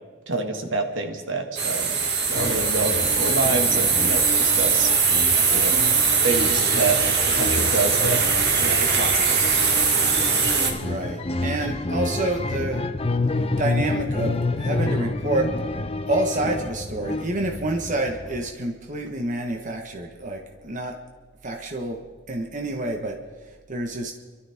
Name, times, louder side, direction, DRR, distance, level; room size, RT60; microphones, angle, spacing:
voice 1, 0.3-2.0 2.3-4.9 5.5-5.7 6.2-7.0 7.3-8.2 8.6-9.8, right 3 dB, 75° right, 4 dB, 2.0 m, -27 dB
sound 1, 1.6-10.7, right 5 dB, 60° right, 2.1 m, -21 dB
sound 2, 2.3-18.5, left 2 dB, 30° left, 0.7 m, -29 dB
voice 2, 10.8-12.9 13.6-15.4 16.1-20.9 21.4-22.0 22.3-23.2 23.7-24.1, right 2 dB, 40° right, 2 dB, 1.4 m, -28 dB
29.5 x 13.0 x 3.7 m, 1.5 s
head